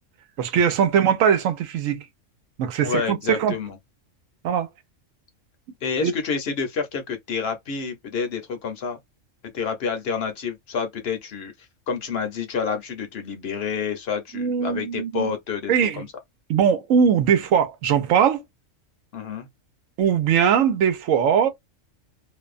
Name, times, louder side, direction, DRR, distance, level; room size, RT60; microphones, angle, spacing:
voice 1, 0.4-2.1 2.6-3.6 4.4-4.7 6.0-6.1 14.3-15.3 15.7-16.0 16.5-18.4 20.0-21.5, right 8 dB, 85° right, 1.0 m, -20 dB
voice 2, 2.8-3.8 5.8-9.0 9.5-11.5 11.9-16.1 19.1-19.5, left 6 dB, 60° left, 0.8 m, -28 dB
2.6 x 2.2 x 2.4 m
omnidirectional pair, 1.3 m